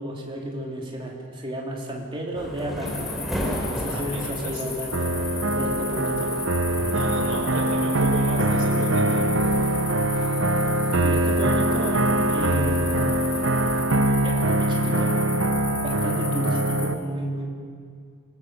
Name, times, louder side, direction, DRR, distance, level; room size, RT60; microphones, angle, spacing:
voice 1, 0.0-3.2 3.7-5.1 5.6-6.3 11.0-13.1 14.2-15.2 15.6-17.5, equal, 25° right, -2 dB, 3.5 m, -32 dB
sound 1, 2.3-13.8, equal, ahead, 3.8 m, -36 dB
sound 2, 2.9-16.9, left 5 dB, 25° left, 5.1 m, -36 dB
voice 2, 3.9-4.6 6.7-9.3, right 1 dB, 85° right, -5 dB, 5.1 m, -33 dB
sound 3, 4.9-16.9, right 1 dB, 60° right, 1.0 m, -23 dB
27.0 x 21.0 x 6.5 m, 2.2 s
head